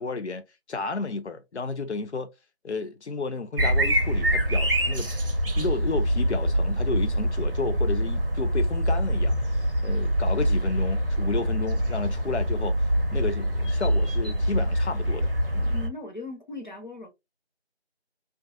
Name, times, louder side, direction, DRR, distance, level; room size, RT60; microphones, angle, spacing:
voice 1, 0.0-2.3 2.6-5.1 5.5-9.4 9.8-15.7, left 4 dB, 85° left, 0.6 m, -32 dB
sound 1, 3.6-15.9, equal, 55° right, 0.6 m, -25 dB
voice 2, 15.7-17.1, left 2 dB, 45° left, 0.8 m, -38 dB
2.3 x 2.2 x 2.4 m
figure-of-eight pair, 175°, 33 cm